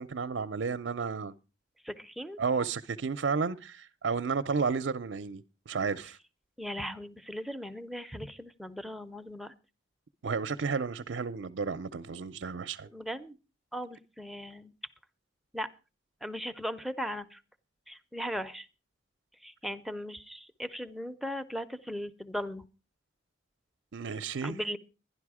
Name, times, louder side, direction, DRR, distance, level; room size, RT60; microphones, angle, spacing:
voice 1, 0.0-1.3 2.4-6.2 10.2-12.9 23.9-24.6, right 5 dB, 70° right, 0.5 m, -32 dB
voice 2, 1.8-2.4 6.6-9.5 12.9-13.4 13.7-14.7 15.5-15.7 16.2-17.4 17.9-18.7 19.4-22.6 24.4-24.8, equal, ahead, 0.6 m, -38 dB
12.0 x 11.0 x 4.8 m
head